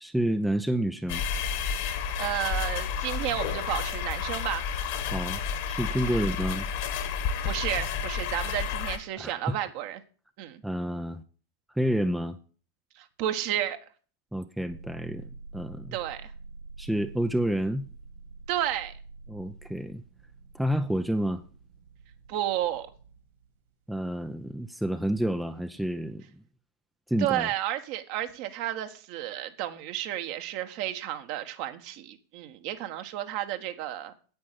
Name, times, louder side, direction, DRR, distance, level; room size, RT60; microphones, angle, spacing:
voice 1, 0.0-1.2 5.1-5.4 5.7-6.7 9.2-9.5 10.6-11.2 11.8-12.4 14.3-15.9 16.8-17.9 19.3-20.0 20.5-21.4 23.9-26.2 27.1-27.5, right 1 dB, 5° right, 8 dB, 0.8 m, -29 dB
sound 1, 1.1-9.0, left 7 dB, 50° left, 1.9 m, -31 dB
voice 2, 2.2-4.7 6.0-6.2 7.4-10.0 10.4-10.6 12.9-13.8 15.9-16.3 18.5-18.9 22.3-22.9 27.2-34.1, right 12 dB, 45° right, 7 dB, 1.5 m, -32 dB
sound 2, 14.7-23.6, right 3 dB, 60° right, 3.2 m, -48 dB
9.7 x 8.6 x 8.4 m, 0.41 s
figure-of-eight pair, 90°, 0 cm